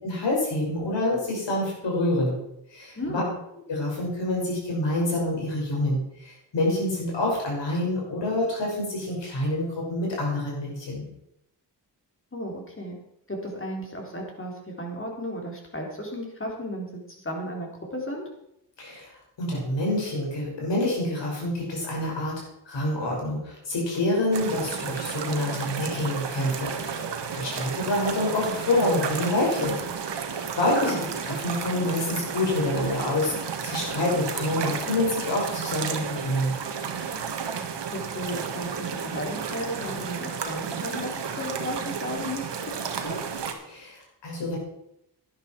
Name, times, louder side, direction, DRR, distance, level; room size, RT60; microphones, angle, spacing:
voice 1, 0.0-2.4 2.7-3.2 3.7-11.0 18.8-22.3 22.7-27.0 27.3-29.7 30.2-30.9 31.3-33.3 33.6-36.5 43.7-44.6, left 1 dB, 75° left, -2 dB, 5.8 m, -27 dB
voice 2, 3.0-3.4 12.3-13.0 13.3-18.2 30.7-31.0 37.9-41.1 41.4-42.6 43.0-43.2, equal, 30° left, 0 dB, 3.8 m, -34 dB
sound 1, 24.3-43.5, right 6 dB, 70° right, 1.6 m, -32 dB
11.5 x 10.5 x 4.5 m, 0.81 s
cardioid pair, 65°, 43 cm